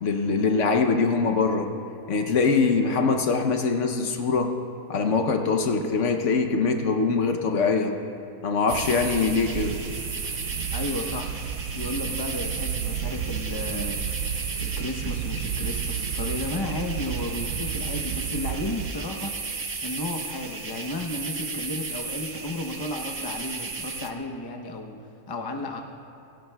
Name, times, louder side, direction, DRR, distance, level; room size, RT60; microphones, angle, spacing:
voice 1, 0.0-1.7 2.1-4.5 4.9-7.9 8.4-9.8, left 4 dB, 60° left, 5 dB, 1.0 m, -23 dB
sound 1, 8.7-24.1, right 4 dB, 55° right, 0.4 m, -34 dB
sound 2, 8.7-18.9, right 9 dB, 90° right, 1.1 m, -33 dB
voice 2, 10.7-14.1 14.6-19.3 19.8-25.0 25.3-25.8, left 2 dB, 30° left, 2 dB, 0.4 m, -33 dB
18.5 x 16.5 x 2.3 m, 2.6 s
omnidirectional pair, 1.7 m